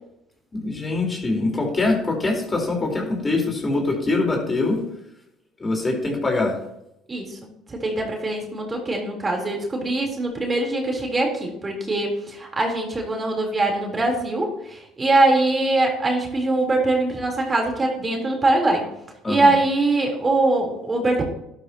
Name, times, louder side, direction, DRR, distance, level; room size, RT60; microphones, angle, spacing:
voice 1, 0.5-4.8 5.6-6.6 19.2-19.5, left 2 dB, 25° left, 1 dB, 3.9 m, -23 dB
voice 2, 7.1-7.4 7.7-18.9 19.3-21.2, right 2 dB, 25° right, 1 dB, 3.5 m, -22 dB
12.0 x 11.5 x 2.9 m, 0.82 s
hypercardioid pair, 65°, 0 cm